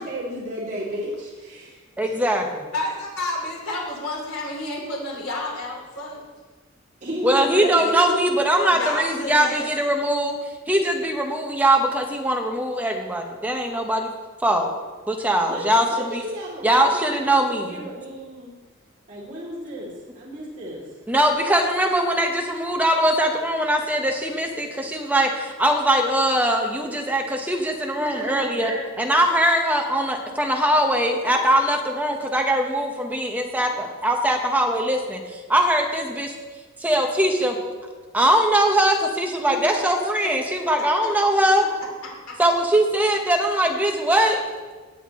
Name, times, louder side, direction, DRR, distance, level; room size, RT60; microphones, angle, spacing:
voice 1, 0.0-2.2 7.0-8.2 15.4-18.5 19.1-20.8 27.9-29.1 39.5-39.8, equal, 35° right, -8 dB, 2.7 m, -33 dB
voice 2, 2.0-2.7 7.2-10.4 10.7-14.1 14.4-14.7 15.1-16.2 16.6-17.9 21.1-28.7 29.0-36.3 36.8-37.6 38.1-41.7 42.4-44.4, right 1 dB, 10° right, 2 dB, 1.1 m, -21 dB
voice 3, 2.7-6.1 7.8-7.9 8.7-9.7 33.8-33.9 40.2-40.3 42.3-42.4, left 2 dB, 85° left, -3 dB, 3.1 m, -30 dB
17.0 x 8.2 x 3.1 m, 1.3 s
head